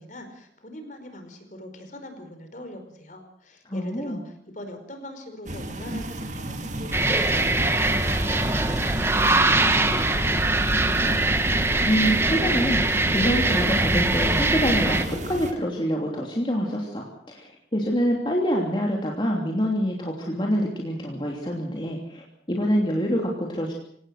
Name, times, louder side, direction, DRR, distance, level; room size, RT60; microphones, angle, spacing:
voice 1, 0.0-11.1, left 1 dB, 45° left, 7 dB, 5.0 m, -42 dB
voice 2, 3.6-4.2 11.9-23.7, equal, 25° left, -1 dB, 3.0 m, -26 dB
sound 1, 5.5-15.5, right 1 dB, 40° right, 2.2 m, -33 dB
sound 2, 6.9-15.1, right 2 dB, 15° right, 1.6 m, -22 dB
27.0 x 17.5 x 6.6 m, 0.67 s
head